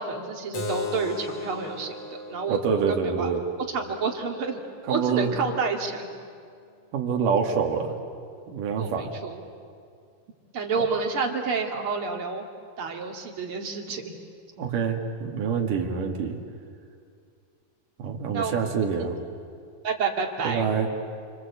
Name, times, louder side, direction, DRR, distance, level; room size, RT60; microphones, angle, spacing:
voice 1, 0.0-2.0 2.3-2.6 2.9-3.3 3.7-4.6 4.9-6.1 8.8-9.4 10.5-12.4 12.8-14.2 18.3-18.6 19.8-20.7, right 4 dB, 40° right, 2 dB, 2.7 m, -29 dB
Keyboard (musical), 0.5-5.6, left 3 dB, 50° left, 3.1 m, -38 dB
voice 2, 2.5-3.4 4.9-5.4 6.9-8.0 8.5-9.1 14.6-16.4 18.0-19.2 20.4-20.9, right 6 dB, 60° right, 2 dB, 3.6 m, -26 dB
29.0 x 24.5 x 8.3 m, 2.3 s
omnidirectional pair, 4.3 m